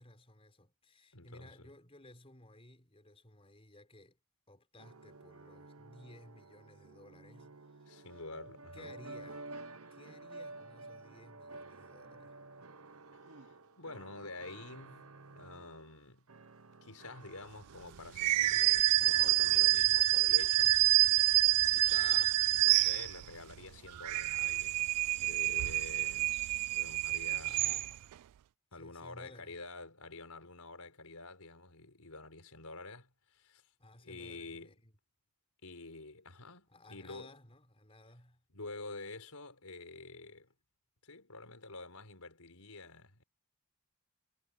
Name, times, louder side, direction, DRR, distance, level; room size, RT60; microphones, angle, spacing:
voice 1, 0.0-4.2 4.5-8.2 8.7-9.5 9.9-12.4 27.5-28.1 28.7-29.6 33.8-35.0 36.7-38.4, left 1 dB, 25° left, 4.8 m, -57 dB
voice 2, 1.1-1.7 7.9-8.9 13.4-13.5 13.8-15.1 15.3-16.3 16.8-20.8 21.7-24.8 25.2-26.4 26.7-27.6 28.7-33.6 34.0-34.7 35.6-37.3 38.5-40.5 41.0-43.2, left 3 dB, 80° left, 4.8 m, -48 dB
sound 1, 4.8-16.0 16.3-18.7 19.0-19.6, right 3 dB, 70° right, 1.2 m, -52 dB
sound 2, 18.1-23.4 23.9-28.1, right 19 dB, 85° right, 0.3 m, -28 dB
head